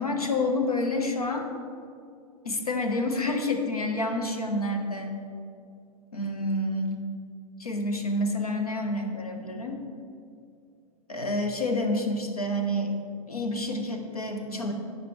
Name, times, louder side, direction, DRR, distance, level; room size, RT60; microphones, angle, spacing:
voice 1, 0.0-1.5 2.4-5.2 6.1-7.0 7.6-9.8 11.1-13.0 13.3-14.7, left 1 dB, 80° left, 4 dB, 1.1 m, -28 dB
11.5 x 8.5 x 3.3 m, 2.4 s
figure-of-eight pair, 90°, 19 cm